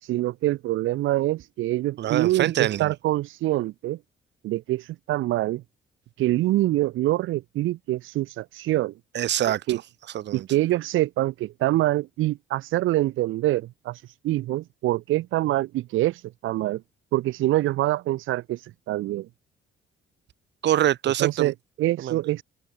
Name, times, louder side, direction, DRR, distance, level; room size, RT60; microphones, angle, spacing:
voice 1, 0.0-4.0 4.4-5.6 6.2-8.9 9.7-9.8 10.3-16.8 17.1-19.3 21.2-22.4, right 16 dB, 90° right, 1.8 m, -25 dB
voice 2, 2.0-2.9 9.1-9.6 10.1-10.5 20.6-21.5 22.0-22.2, right 12 dB, 60° right, 0.7 m, -24 dB
open air
cardioid pair, 90°, 20 cm